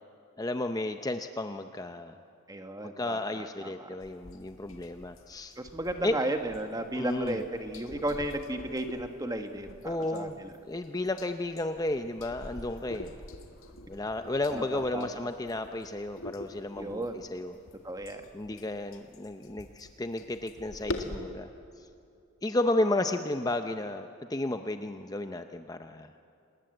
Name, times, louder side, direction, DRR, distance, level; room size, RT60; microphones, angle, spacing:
voice 1, 0.4-2.2 2.8-5.6 6.0-6.2 7.0-7.4 9.8-10.4 10.7-13.1 13.9-17.5 18.3-21.5 21.8-21.9 22.4-26.1, left 2 dB, 15° left, 7 dB, 0.6 m, -33 dB
voice 2, 2.5-3.9 5.6-10.5 14.5-15.1 16.7-17.2 17.8-18.2, right 1 dB, 15° right, 6 dB, 1.4 m, -34 dB
sound 1, 4.0-21.2, left 1 dB, 75° left, 1.9 m, -45 dB
27.5 x 19.5 x 7.8 m, 2.5 s
head